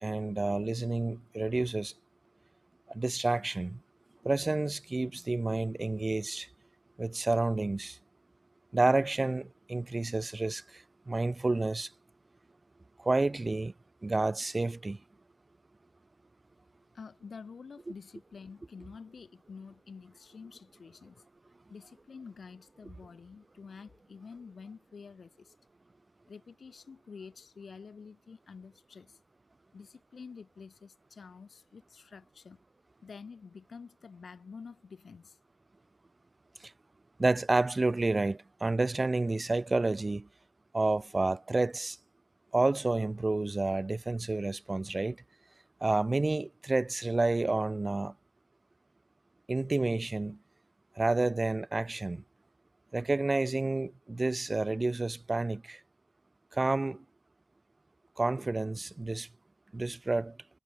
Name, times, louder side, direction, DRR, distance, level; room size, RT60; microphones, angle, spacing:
voice 1, 0.0-1.9 2.9-3.8 4.2-6.5 7.0-8.0 8.7-11.9 13.0-13.7 14.0-15.0 37.2-40.3 40.7-42.0 42.5-45.2 45.8-48.1 49.5-50.4 51.0-52.2 52.9-55.8 56.5-57.0 58.2-59.3 59.7-60.4, right 2 dB, 35° right, 0.5 m, -29 dB
voice 2, 16.9-21.3 21.7-25.6 26.3-29.2 29.7-32.6 33.0-35.4, left 5 dB, 80° left, 2.0 m, -49 dB
wide cardioid pair, 100°, 0 cm